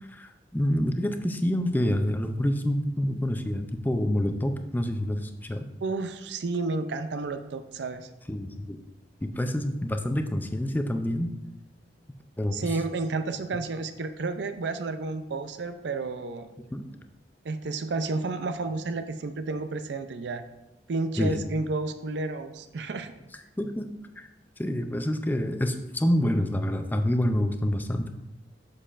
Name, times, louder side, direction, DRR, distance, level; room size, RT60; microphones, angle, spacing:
voice 1, 0.1-5.7 8.3-8.8 9.2-11.3 12.4-12.6 16.7-16.8 21.2-21.4 23.6-23.9 24.2-24.3 24.6-28.1, left 1 dB, 10° left, 7 dB, 0.4 m, -27 dB
voice 2, 5.8-8.1 12.5-16.5 17.4-20.4 20.9-23.1, right 3 dB, 70° right, 9 dB, 0.5 m, -31 dB
7.3 x 6.5 x 2.5 m, 0.96 s
head